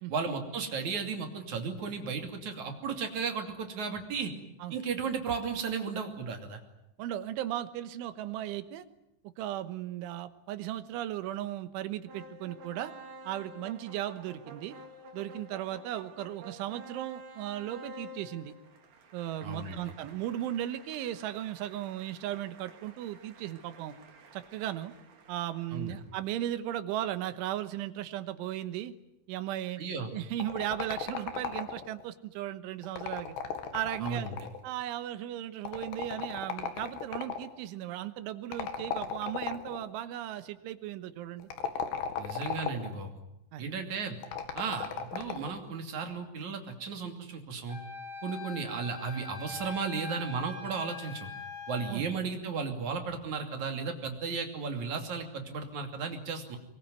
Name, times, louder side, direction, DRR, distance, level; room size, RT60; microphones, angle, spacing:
voice 1, 0.1-4.3 4.7-6.6 19.4-19.8 25.7-26.0 29.8-30.1 34.0-34.4 42.2-43.1 43.6-44.2 44.5-47.8 48.2-51.3 51.7-56.6, right 5 dB, 45° right, 5 dB, 3.5 m, -35 dB
voice 2, 7.0-8.9 9.4-12.9 13.3-14.8 15.1-18.5 19.1-23.9 24.3-24.9 25.3-28.9 29.3-29.8 30.1-33.4 33.7-34.3 34.6-41.5 43.5-43.7 51.9-52.1, right 12 dB, 85° right, 12 dB, 3.6 m, -36 dB
sound 1, 12.1-26.2, right 1 dB, 70° right, 5.2 m, -51 dB
sound 2, 30.4-32.0 32.8-34.7 35.6-37.5 38.5-39.8 41.4-43.0 44.2-45.6, left 7 dB, 65° left, 4.0 m, -36 dB
Wind instrument woodwind instrument, 47.7-52.0, left 4 dB, 50° left, 6.8 m, -43 dB
23.5 x 22.5 x 9.5 m, 0.85 s
omnidirectional pair, 5.4 m